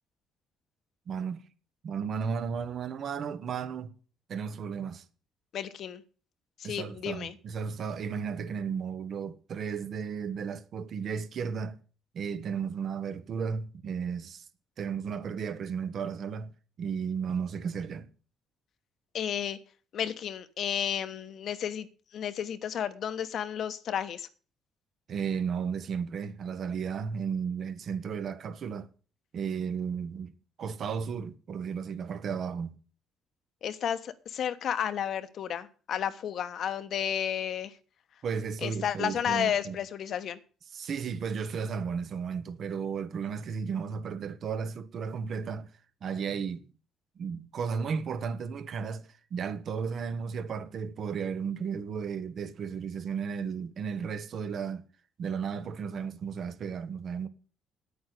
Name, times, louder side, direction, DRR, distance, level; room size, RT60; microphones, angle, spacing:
voice 1, 1.1-1.5 1.8-3.9 4.3-5.0 6.6-11.8 12.1-14.4 14.8-16.5 16.8-18.1 25.1-28.9 29.3-30.3 30.6-32.8 38.2-39.8 40.7-45.7 46.0-46.7 47.2-54.8 55.2-57.3, right 6 dB, 55° right, 1.3 m, -34 dB
voice 2, 5.5-6.0 6.6-7.3 19.1-19.6 19.9-21.9 22.1-24.3 33.6-37.7 38.6-40.4, left 9 dB, 60° left, 1.2 m, -32 dB
9.4 x 8.8 x 8.4 m
cardioid pair, 105°, 0 cm